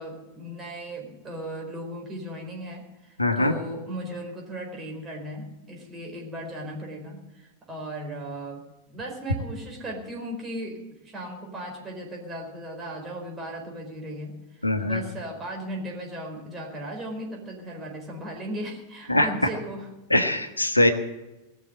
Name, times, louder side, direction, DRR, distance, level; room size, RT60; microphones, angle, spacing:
voice 1, 0.0-8.6 8.9-19.9, right 1 dB, 20° right, 0 dB, 4.4 m, -37 dB
voice 2, 3.2-3.5 14.6-15.0 19.1-19.3 20.1-20.9, left 1 dB, 85° left, 6 dB, 1.1 m, -21 dB
19.5 x 6.8 x 9.1 m, 1.1 s
figure-of-eight pair, 90°, 0 cm